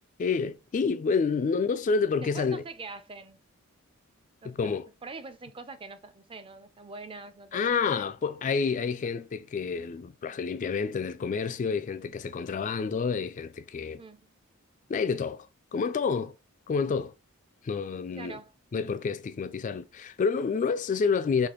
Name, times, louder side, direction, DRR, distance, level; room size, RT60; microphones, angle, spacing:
voice 1, 0.2-2.6 4.4-4.9 7.5-14.0 14.9-16.3 16.7-17.1 17.6-18.4 18.7-21.5, left 5 dB, 35° left, 0.3 m, -29 dB
voice 2, 2.2-3.4 4.4-4.6 5.0-8.1 14.0-14.3 18.2-18.5, right 3 dB, 25° right, 0.5 m, -44 dB
5.0 x 2.4 x 3.7 m
head